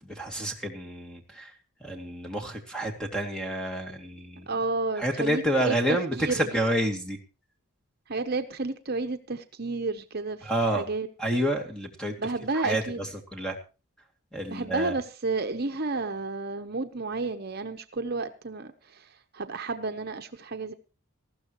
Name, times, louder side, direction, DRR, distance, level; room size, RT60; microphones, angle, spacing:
voice 1, 0.0-1.5 1.8-4.5 5.0-7.2 10.4-10.9 11.2-12.2 12.5-13.6 14.3-14.9, right 1 dB, 5° left, 4 dB, 2.5 m, -29 dB
voice 2, 4.5-5.8 6.2-6.5 8.1-10.5 10.8-11.1 12.2-13.0 14.5-20.7, right 3 dB, 50° right, 6 dB, 1.0 m, -31 dB
19.5 x 15.0 x 3.1 m, 0.33 s
head